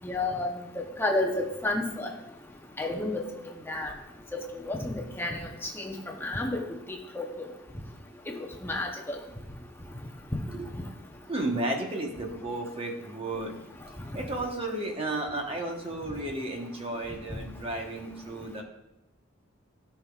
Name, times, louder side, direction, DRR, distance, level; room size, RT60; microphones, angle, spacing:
voice 1, 0.0-0.5 1.0-2.1 2.8-3.2 3.7-3.9 4.3-5.4 5.8-5.9 6.2-6.6 7.1-7.3 8.4-9.2, left 2 dB, 10° left, 0 dB, 0.8 m, -30 dB
voice 2, 11.3-13.6 14.1-18.6, right 2 dB, 30° right, 1 dB, 1.1 m, -33 dB
14.0 x 5.8 x 2.4 m, 0.91 s
head